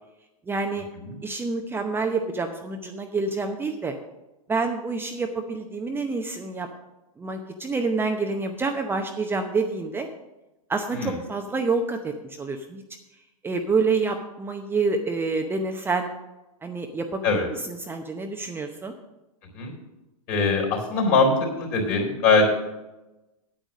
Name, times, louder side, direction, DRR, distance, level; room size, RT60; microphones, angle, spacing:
voice 1, 0.5-0.9 1.2-3.9 4.5-6.7 7.2-10.1 10.7-12.8 13.4-16.1 16.6-18.9, right 4 dB, 10° right, 4 dB, 0.7 m, -27 dB
voice 2, 20.3-21.3 21.6-22.5, left 4 dB, 45° left, 3 dB, 3.8 m, -21 dB
9.0 x 8.9 x 6.3 m, 1.0 s
hypercardioid pair, 115°, 19 cm